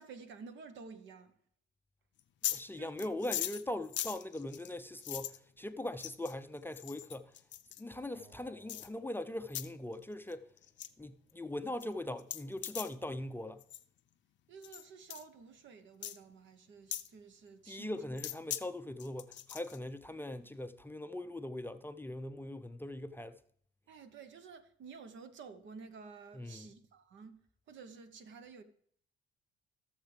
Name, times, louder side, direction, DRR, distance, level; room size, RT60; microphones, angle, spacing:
voice 1, 0.0-1.3 2.8-3.1 14.5-18.0 23.9-28.6, right 5 dB, 70° right, 1.0 m, -51 dB
sound 1, 2.2-2.6 3.0-5.4 6.0-6.3 6.7-7.8 8.7-8.9 9.5-9.7 10.0-10.3 10.6-10.9 11.3-11.4 11.8-11.9 12.2-12.9 13.6-13.8 14.6-14.8 15.1-15.2 16.0-16.2 16.9-17.1 18.2-18.6 19.0-19.8, left 12 dB, 65° left, 0.5 m, -40 dB
voice 2, 2.5-7.3 7.8-10.5 11.0-13.6 17.7-23.4 26.3-26.7, left 1 dB, 10° left, 0.4 m, -41 dB
Acoustic guitar, 8.1-11.4, right 1 dB, 50° right, 3.9 m, -66 dB
16.0 x 6.6 x 3.3 m
cardioid pair, 90°, 20 cm